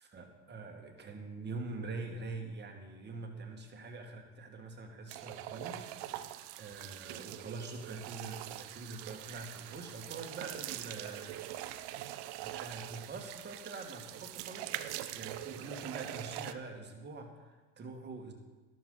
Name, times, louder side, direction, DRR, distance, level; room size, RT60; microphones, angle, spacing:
voice 1, 0.0-5.9 6.6-11.4 12.4-14.9 15.1-18.3, right 3 dB, 25° right, 3 dB, 2.0 m, -44 dB
sound 1, 5.1-16.5, right 14 dB, 55° right, 0.8 m, -43 dB
sound 2, 8.0-13.9, right 7 dB, 80° right, 1.8 m, -62 dB
13.0 x 12.0 x 4.0 m, 1.2 s
hypercardioid pair, 100°, 42 cm